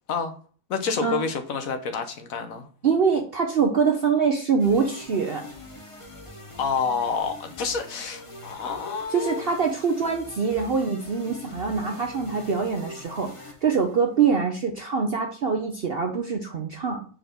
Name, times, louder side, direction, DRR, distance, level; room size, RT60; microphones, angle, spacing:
voice 1, 0.7-2.7 6.6-9.5, left 5 dB, 65° left, 7 dB, 1.1 m, -28 dB
voice 2, 2.8-5.4 9.1-17.1, right 5 dB, 55° right, 3 dB, 0.7 m, -24 dB
sound 1, 4.6-14.3, left 1 dB, 20° left, 1.1 m, -44 dB
4.5 x 4.3 x 5.0 m, 0.41 s
omnidirectional pair, 1.7 m